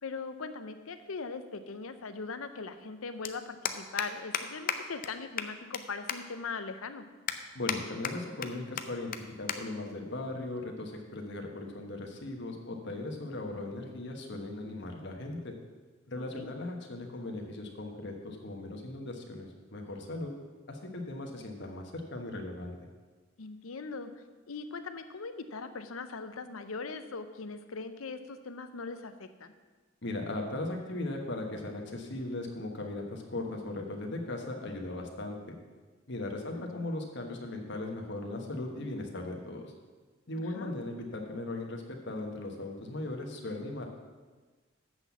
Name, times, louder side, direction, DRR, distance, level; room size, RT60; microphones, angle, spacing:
voice 1, 0.0-7.0 16.2-16.5 23.4-24.1 24.5-29.5 36.3-36.9 40.4-40.7, left 4 dB, 90° left, 10 dB, 0.7 m, -40 dB
sound 1, 1.0-1.1 2.5-2.6 2.7-2.9 3.2-3.3 3.7-4.1 4.3-4.4 4.7-4.8 5.0-5.1 5.4-5.8 6.1-6.2 6.7-6.8 7.3-7.8 8.0-8.5 8.8-8.9 9.1-9.2 9.5-9.6 9.9-10.1 10.9-11.2, left 8 dB, 45° left, 0.6 m, -33 dB
voice 2, 7.5-15.5 16.1-20.3 20.7-22.8 30.0-35.5 36.1-39.7 40.3-43.9, left 2 dB, 60° left, 2 dB, 1.3 m, -38 dB
7.9 x 6.1 x 7.1 m, 1.4 s
head